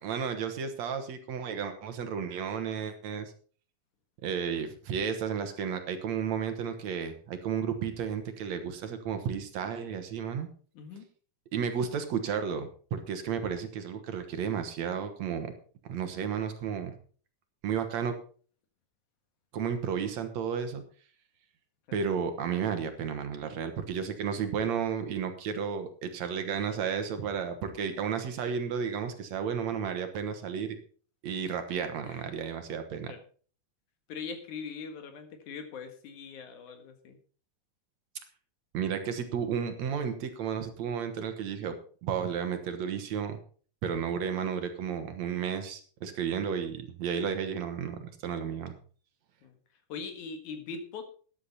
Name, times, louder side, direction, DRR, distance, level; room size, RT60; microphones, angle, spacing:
voice 1, 0.0-3.3 4.2-10.5 11.5-15.5 15.8-16.9 17.6-18.1 19.5-20.8 21.9-30.8 31.2-33.1 38.7-41.8 42.0-43.4 43.8-48.7, right 7 dB, 65° right, 8 dB, 2.4 m, -33 dB
voice 2, 10.8-11.1 21.9-22.0 32.0-32.2 33.1-33.2 34.1-37.2 49.4-49.5 49.9-51.0, left 5 dB, 75° left, 7 dB, 3.1 m, -41 dB
13.0 x 10.5 x 4.2 m, 0.42 s
omnidirectional pair, 3.5 m